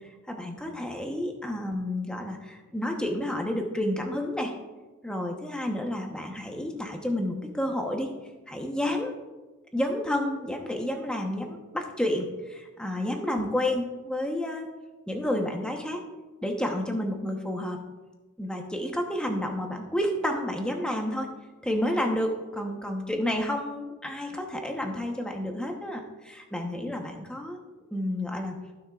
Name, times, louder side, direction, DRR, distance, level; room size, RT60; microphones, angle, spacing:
voice 1, 0.3-4.5 5.0-8.1 8.5-9.2 9.7-14.7 15.1-16.0 16.4-17.8 18.4-21.3 21.6-27.6 27.9-28.5, left 1 dB, 5° left, 2 dB, 1.0 m, -30 dB
15.5 x 6.3 x 2.4 m, 1.2 s
head